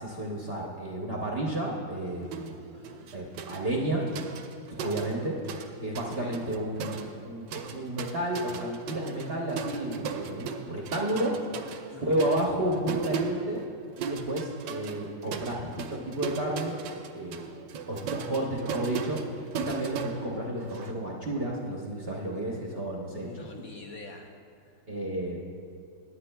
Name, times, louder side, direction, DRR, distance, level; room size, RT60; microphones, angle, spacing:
voice 1, 0.0-2.6 3.1-4.1 4.7-5.4 5.8-11.4 12.0-13.6 14.0-16.8 17.1-17.5 17.9-23.6 24.9-25.4, right 1 dB, 45° right, -2 dB, 0.8 m, -31 dB
sound 1, 2.3-2.6 2.8-5.7 5.9-20.9, right 6 dB, 85° right, 1.4 m, -38 dB
voice 2, 2.7-3.1 6.2-6.4 11.9-12.2 23.2-24.3 24.6-24.8, left 3 dB, 65° left, 2 dB, 0.9 m, -46 dB
18.5 x 9.8 x 2.2 m, 2.4 s
omnidirectional pair, 2.0 m